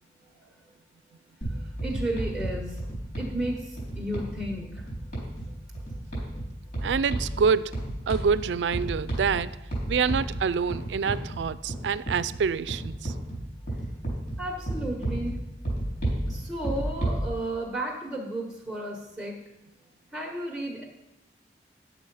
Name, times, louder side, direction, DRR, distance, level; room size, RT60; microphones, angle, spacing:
sound 1, 1.4-17.3, right 1 dB, 55° left, 4.2 m, -33 dB
voice 1, 1.5-2.8 3.2-4.8 6.3-6.4 14.4-15.4 16.3-19.4 20.1-20.8, right 1 dB, ahead, -3 dB, 1.3 m, -33 dB
voice 2, 6.8-7.7 8.1-9.5 9.9-13.1, right 6 dB, 85° right, 17 dB, 0.4 m, -26 dB
9.8 x 6.9 x 5.4 m, 0.93 s
head